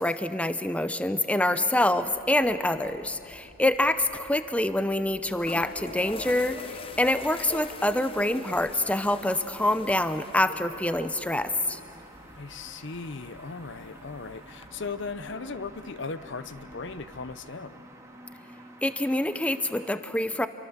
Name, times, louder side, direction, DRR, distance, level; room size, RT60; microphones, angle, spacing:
voice 1, 0.0-11.8 18.8-20.5, left 1 dB, 5° left, 11 dB, 0.6 m, -26 dB
Fixed-wing aircraft airplane, 2.0-17.3, equal, 45° right, 3.2 m, -49 dB
sound 1, 3.3-3.5 3.8-3.9 4.9-5.0 5.3-14.7, left 4 dB, 30° left, 0.9 m, -45 dB
sound 2, 5.9-19.9, right 1 dB, 15° right, 2.1 m, -50 dB
voice 2, 12.3-17.8, left 4 dB, 65° left, 14 dB, 0.8 m, -37 dB
27.5 x 23.5 x 7.3 m, 2.6 s
head